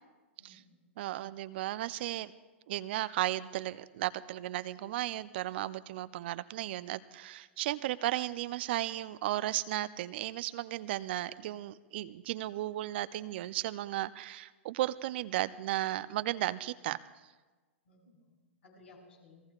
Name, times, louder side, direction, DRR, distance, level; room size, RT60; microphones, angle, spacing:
voice 1, 0.4-0.9 17.9-19.4, left 2 dB, 70° left, -2 dB, 7.2 m, -59 dB
voice 2, 1.0-2.3 2.7-17.0, right 15 dB, 55° right, 15 dB, 0.5 m, -35 dB
29.0 x 19.5 x 2.4 m, 1.3 s
hypercardioid pair, 110°, 7 cm